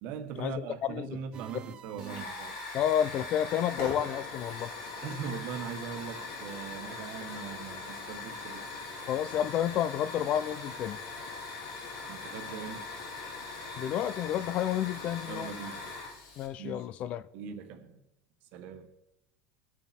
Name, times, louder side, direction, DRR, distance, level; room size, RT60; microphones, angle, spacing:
voice 1, 0.0-2.6 5.0-8.7 12.1-12.9 15.3-15.9 16.6-16.9 17.3-18.0 18.5-18.9, right 6 dB, 50° right, 1.4 m, -40 dB
sound 1, 1.3-6.8, right 9 dB, 25° right, 0.6 m, -49 dB
Hiss / Fire, 2.0-16.5, left 3 dB, 80° left, 4.2 m, -41 dB
voice 2, 2.7-4.7 9.1-11.0 13.8-15.5 16.4-17.2, left 10 dB, 35° left, 0.5 m, -30 dB
21.5 x 7.3 x 4.3 m
cardioid pair, 165°, 4 cm